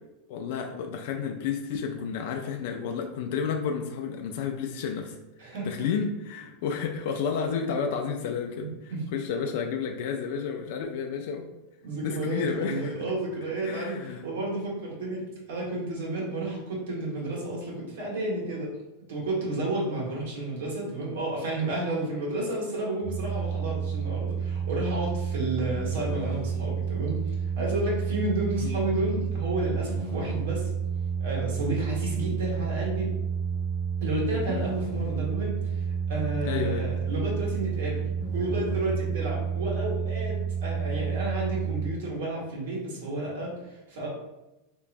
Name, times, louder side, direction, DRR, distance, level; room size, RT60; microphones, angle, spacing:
voice 1, 0.3-5.2 5.6-8.7 9.1-11.5 12.0-12.9 13.6-14.2 19.8-20.0 28.6-28.8 34.5-34.7 36.4-36.9, left 6 dB, 65° left, 3 dB, 0.4 m, -31 dB
voice 2, 5.4-5.9 8.6-9.0 11.8-15.2 15.5-18.7 19.1-30.7 31.2-33.1 34.0-38.0 38.3-44.1, right 2 dB, 90° right, -4 dB, 1.4 m, -31 dB
sound 1, 23.0-41.9, right 6 dB, 55° right, 1.3 m, -30 dB
3.4 x 3.0 x 2.5 m, 0.97 s
supercardioid pair, 145°, 0 cm